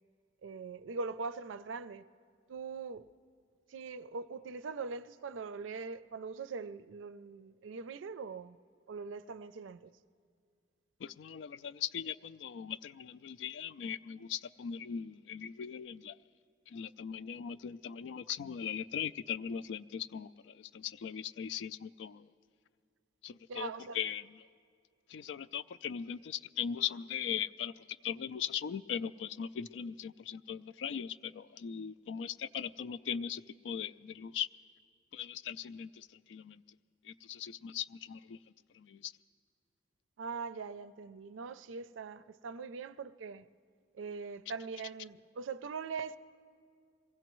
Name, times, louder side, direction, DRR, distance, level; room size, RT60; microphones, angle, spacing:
voice 1, 0.4-2.0 2.5-3.1 3.7-8.6 8.9-9.9 23.5-24.0 40.2-43.4 43.9-46.2, right 4 dB, 90° right, 0.4 m, -42 dB
voice 2, 11.0-16.2 16.7-22.3 23.2-24.5 25.1-34.5 35.1-36.6 37.0-38.4 38.7-39.1, left 8 dB, 70° left, 0.3 m, -39 dB
22.5 x 16.5 x 3.1 m
head